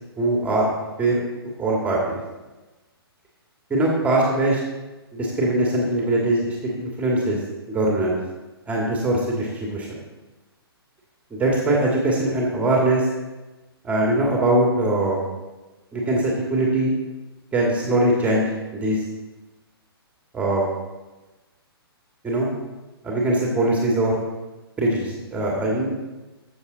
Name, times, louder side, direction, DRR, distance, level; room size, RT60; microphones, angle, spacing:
voice 1, 0.2-0.7 1.0-1.2 1.6-2.2 3.7-4.6 5.1-7.4 7.7-8.2 8.7-9.9 11.3-13.0 13.8-15.2 15.9-16.9 17.5-19.0 20.3-20.7 22.2-22.5 23.0-24.2 24.8-25.9, right 1 dB, 10° right, -2 dB, 2.0 m, -21 dB
14.0 x 6.9 x 4.0 m, 1.1 s
figure-of-eight pair, 130°, 13 cm